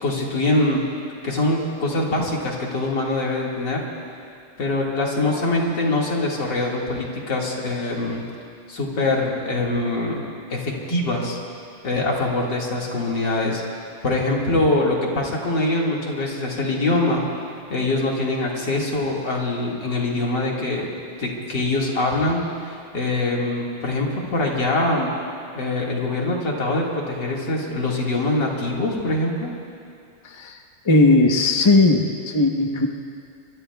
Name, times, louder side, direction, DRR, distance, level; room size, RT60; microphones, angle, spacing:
voice 1, 0.0-0.9 1.2-3.8 4.6-8.3 8.7-10.2 10.5-11.4 11.8-13.6 14.0-17.3 17.7-25.2 25.5-29.5, left 2 dB, 55° left, -2 dB, 2.6 m, -23 dB
voice 2, 30.2-30.6 30.8-32.9, left 2 dB, 40° left, 2 dB, 0.4 m, -17 dB
25.5 x 23.0 x 2.3 m, 2.4 s
omnidirectional pair, 2.3 m